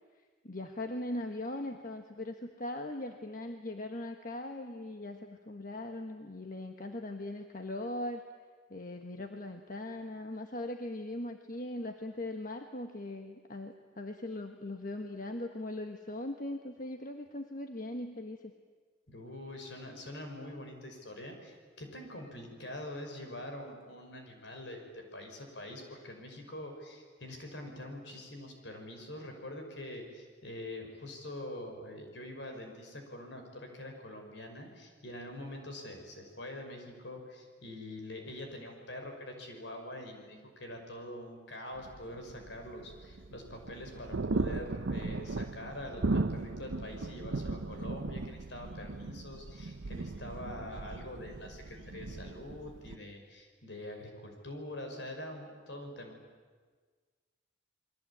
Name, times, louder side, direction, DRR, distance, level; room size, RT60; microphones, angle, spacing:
voice 1, 0.4-8.2 8.7-18.5, left 1 dB, 45° left, 5 dB, 1.4 m, -40 dB
voice 2, 19.1-56.2, left 1 dB, 70° left, 3 dB, 6.1 m, -45 dB
sound 1, 41.8-53.0, right 3 dB, 80° right, 0.8 m, -37 dB
29.0 x 22.5 x 8.8 m, 1.5 s
head